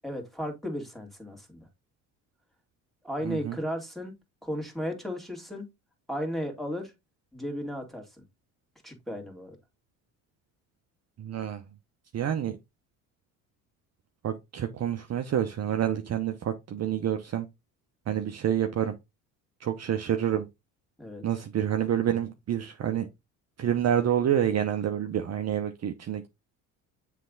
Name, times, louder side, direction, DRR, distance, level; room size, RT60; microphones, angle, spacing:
voice 1, 0.0-1.7 3.0-4.1 4.4-5.6 6.1-6.9 7.3-8.0 8.8-9.6 21.0-21.2, equal, ahead, 2.3 m, -34 dB
voice 2, 3.2-3.6 11.2-11.6 12.1-12.6 14.2-17.5 18.1-18.9 19.6-20.5 21.2-23.1 23.6-26.3, right 10 dB, 40° right, 0.8 m, -28 dB
7.4 x 3.4 x 3.8 m
hypercardioid pair, 70°, 41 cm